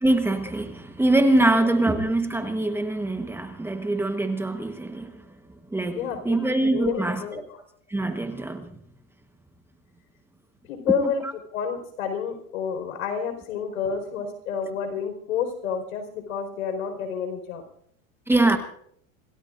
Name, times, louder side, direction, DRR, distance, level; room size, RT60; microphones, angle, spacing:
voice 1, 0.0-5.2 5.7-6.0 6.2-7.2 7.9-8.8 11.0-11.1 18.3-18.6, right 2 dB, 5° right, 1.2 m, -23 dB
voice 2, 5.9-6.4 6.7-7.6 10.7-11.2 11.5-17.6, left 7 dB, 90° left, 4.9 m, -29 dB
27.0 x 17.0 x 2.6 m
supercardioid pair, 140°, 41 cm